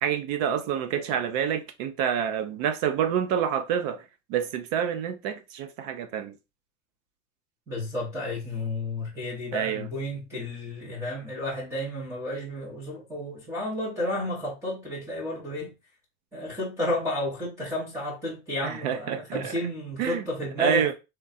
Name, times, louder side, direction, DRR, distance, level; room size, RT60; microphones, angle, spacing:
voice 1, 0.0-4.0 4.3-6.4 9.5-9.9 18.6-19.5 20.0-20.3 20.6-20.9, right 8 dB, 35° right, 0.6 m, -27 dB
voice 2, 7.7-15.7 16.3-20.9, left 1 dB, 10° right, 1.0 m, -32 dB
3.7 x 3.2 x 4.0 m
supercardioid pair, 175°, 35 cm